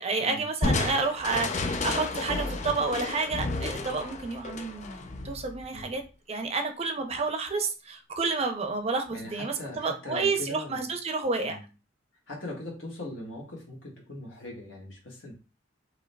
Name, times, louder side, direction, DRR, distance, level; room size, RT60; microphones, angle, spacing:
voice 1, 0.0-6.0 6.3-11.6, right 4 dB, 30° right, 6 dB, 0.5 m, -30 dB
Crushing, 0.6-6.0, left 3 dB, 40° left, 0.4 m, -32 dB
voice 2, 9.1-10.8 11.4-11.6 12.3-15.3, left 1 dB, 85° left, -2 dB, 1.6 m, -40 dB
4.7 x 2.8 x 2.3 m, 0.33 s
head